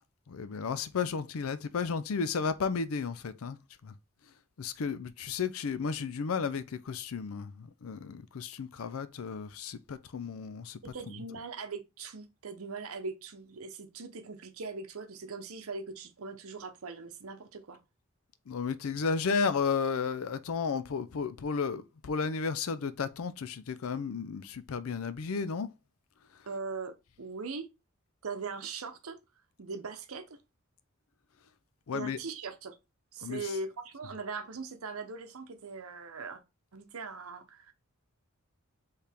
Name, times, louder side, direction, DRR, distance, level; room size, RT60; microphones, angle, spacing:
voice 1, 0.3-3.6 3.8-3.9 4.6-11.1 18.5-25.7 31.9-32.2 33.2-33.5, left 5 dB, 75° left, 0.5 m, -33 dB
voice 2, 10.8-17.8 26.5-27.7 28.2-29.2 29.6-30.4 31.9-32.8 33.1-36.4 36.7-37.7, right 4 dB, 80° right, 0.8 m, -40 dB
4.6 x 3.3 x 3.5 m
head